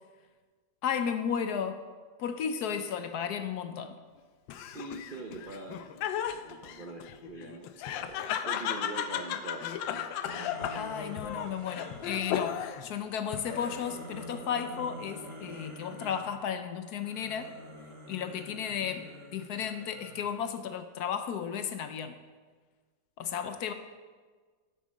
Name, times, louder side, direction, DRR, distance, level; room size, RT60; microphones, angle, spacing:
voice 1, 0.8-1.8 2.2-4.0 10.7-17.5 18.1-22.2 23.2-23.7, left 7 dB, 70° left, 9 dB, 1.0 m, -34 dB
Laughter, 4.5-12.9 13.3-14.0, left 9 dB, 85° left, 1.3 m, -35 dB
voice 2, 4.6-6.0 6.3-8.2 8.4-10.1, right 3 dB, 85° right, 3 dB, 0.4 m, -43 dB
sound 1, 10.2-12.3 13.1-16.3 17.0-20.4, equal, 20° right, 1.1 m, -46 dB
8.3 x 8.1 x 6.2 m, 1.5 s
omnidirectional pair, 2.0 m